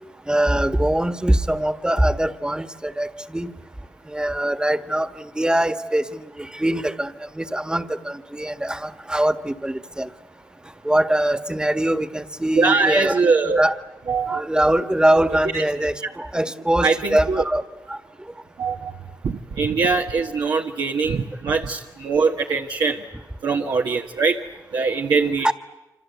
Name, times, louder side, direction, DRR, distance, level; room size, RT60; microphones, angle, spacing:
voice 1, 0.3-3.5 4.1-10.1 10.8-13.2 13.5-13.7 14.3-17.6 17.9-18.0 25.4-25.5, right 1 dB, 10° right, 10 dB, 1.5 m, -22 dB
voice 2, 12.5-13.6 14.1-14.4 15.5-15.6 16.0-16.1 16.8-17.4 18.6-18.9 19.2-23.0 23.4-24.4 24.7-25.5, right 4 dB, 75° right, 0 dB, 1.4 m, -22 dB
28.0 x 26.0 x 8.2 m, 1.0 s
cardioid pair, 60°, 8 cm